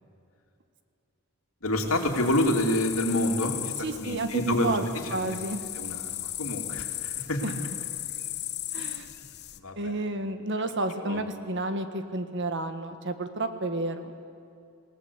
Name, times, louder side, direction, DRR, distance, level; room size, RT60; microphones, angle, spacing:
voice 1, 1.6-5.4 5.7-7.4 8.8-8.9 9.5-9.9 11.0-11.2, left 1 dB, 70° left, 1 dB, 3.0 m, -28 dB
sound 1, 1.8-9.6, left 13 dB, 50° left, 1.0 m, -37 dB
voice 2, 3.8-4.8 5.1-5.6 7.4-7.5 8.7-9.1 9.8-14.2, right 2 dB, 55° right, 8 dB, 1.6 m, -31 dB
27.5 x 18.0 x 8.3 m, 2.6 s
head